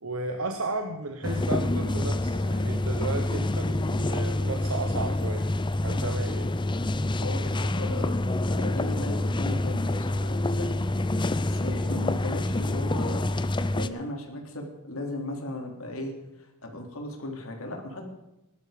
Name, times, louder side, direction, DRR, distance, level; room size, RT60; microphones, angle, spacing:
voice 1, 0.0-5.4 5.8-6.5, right 2 dB, 70° right, 5 dB, 1.3 m, -34 dB
sound 1, 1.2-13.9, left 1 dB, 20° left, 0.6 m, -27 dB
voice 2, 7.2-8.2 8.5-10.8 11.3-13.3 13.7-16.1 16.4-18.1, left 1 dB, 70° left, 2 dB, 3.5 m, -36 dB
19.0 x 12.0 x 5.2 m, 0.92 s
head